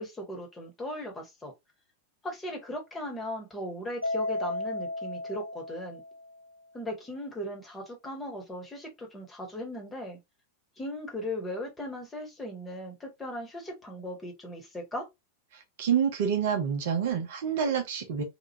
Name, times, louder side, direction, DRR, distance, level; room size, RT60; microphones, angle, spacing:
voice 1, 0.0-1.5 2.2-6.0 6.7-10.2 10.8-15.1, left 1 dB, 15° left, 1.1 m, -38 dB
Mallet percussion, 4.0-6.5, left 2 dB, 90° right, 0.5 m, -34 dB
voice 2, 15.5-18.2, right 7 dB, 55° right, 0.7 m, -28 dB
2.9 x 2.3 x 2.8 m
figure-of-eight pair, 90°, 0 cm